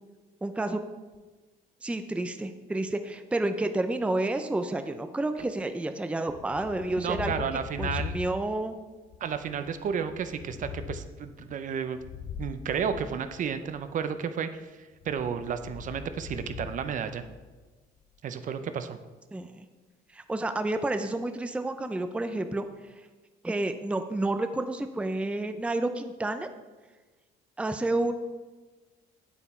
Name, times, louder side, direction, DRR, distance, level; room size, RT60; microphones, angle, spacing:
voice 1, 0.4-0.8 1.8-7.3 7.8-8.7 19.3-19.6 20.1-22.7 23.4-26.5 27.6-28.1, right 2 dB, 5° right, 8 dB, 0.5 m, -30 dB
Thunder, 6.3-8.7 9.1-13.9 14.9-17.6, left 7 dB, 65° left, 0.7 m, -41 dB
voice 2, 7.0-8.1 9.2-12.0 12.4-14.5 14.8-17.2 18.2-19.0, right 7 dB, 50° right, 10 dB, 0.7 m, -32 dB
8.3 x 8.0 x 4.4 m, 1.3 s
cardioid pair, 110°, 17 cm